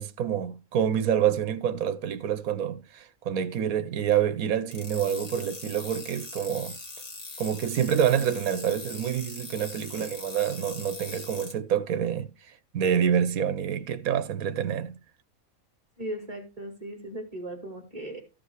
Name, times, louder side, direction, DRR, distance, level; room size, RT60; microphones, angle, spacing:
voice 1, 0.0-6.8 7.4-12.3 12.7-15.0, right 9 dB, 80° right, 1.2 m, -27 dB
sound 1, 4.7-11.5, left 3 dB, 65° left, 2.8 m, -41 dB
voice 2, 16.0-18.2, right 1 dB, 25° right, 2.7 m, -37 dB
14.5 x 5.1 x 4.8 m
omnidirectional pair, 1.5 m